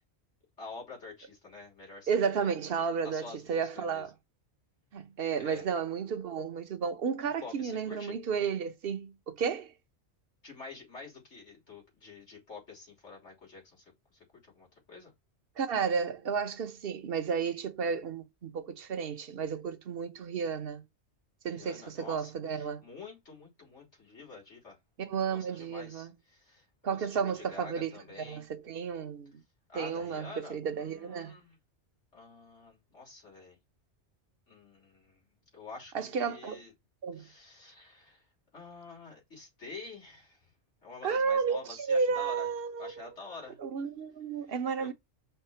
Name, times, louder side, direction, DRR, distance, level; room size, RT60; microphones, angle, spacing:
voice 1, 0.6-2.5 3.0-4.1 5.4-5.7 7.2-8.2 10.4-13.8 14.1-15.1 21.4-24.8 25.3-28.5 29.7-31.6 32.1-33.6 34.5-35.3 35.5-36.7 37.1-38.2 38.5-40.5 40.8-42.5 42.8-43.6 44.4-44.9, left 4 dB, 85° left, 3.7 m, -48 dB
voice 2, 2.1-4.1 4.9-9.7 15.6-20.8 21.4-22.8 25.0-26.1 26.8-29.3 29.7-31.3 35.9-36.6 37.0-37.2 41.0-43.0 43.6-44.9, right 6 dB, 55° right, 1.0 m, -32 dB
5.8 x 3.5 x 5.6 m
omnidirectional pair, 1.2 m